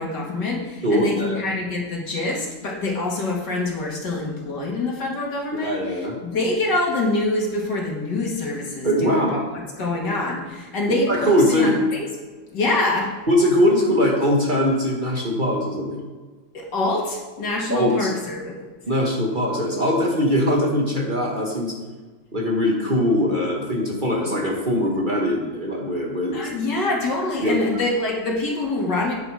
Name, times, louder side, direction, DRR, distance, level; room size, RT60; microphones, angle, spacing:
voice 1, 0.0-5.8 6.2-9.4 9.8-12.1 12.5-13.1 16.5-18.5 26.3-29.1, left 2 dB, 65° left, -2 dB, 2.8 m, -25 dB
voice 2, 0.8-1.4 5.5-6.1 8.8-9.4 11.1-11.8 13.3-16.0 17.7-18.1 18.9-21.7 22.3-26.5 27.4-27.7, equal, 25° right, -2 dB, 1.9 m, -21 dB
9.6 x 8.9 x 5.0 m, 1.3 s
omnidirectional pair, 2.0 m